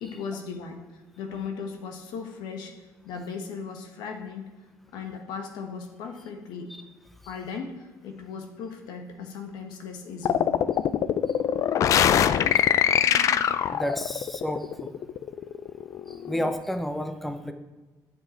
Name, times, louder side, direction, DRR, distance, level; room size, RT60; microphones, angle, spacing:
voice 1, 0.0-4.5 4.9-6.7 7.2-10.6, left 5 dB, 85° left, 5 dB, 1.4 m, -37 dB
sound 1, 10.2-16.5, left 9 dB, 50° left, 0.4 m, -23 dB
voice 2, 13.7-14.9 16.1-17.5, equal, ahead, 7 dB, 0.6 m, -31 dB
9.7 x 7.0 x 4.5 m, 1.2 s
cardioid pair, 135°, 7 cm